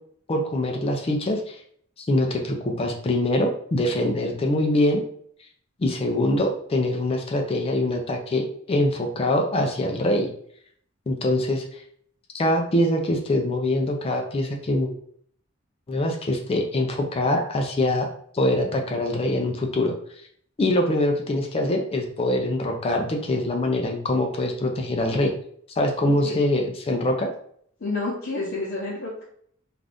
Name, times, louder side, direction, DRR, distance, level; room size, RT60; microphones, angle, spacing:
voice 1, 0.3-1.6 2.0-5.0 5.8-10.3 11.1-11.6 12.3-14.9 15.9-18.1 18.3-20.0 20.6-25.3 25.8-27.3, left 1 dB, 30° left, 2 dB, 0.4 m, -23 dB
voice 2, 27.8-29.2, left 2 dB, 55° left, -7 dB, 0.7 m, -29 dB
2.5 x 2.4 x 3.3 m, 0.62 s
head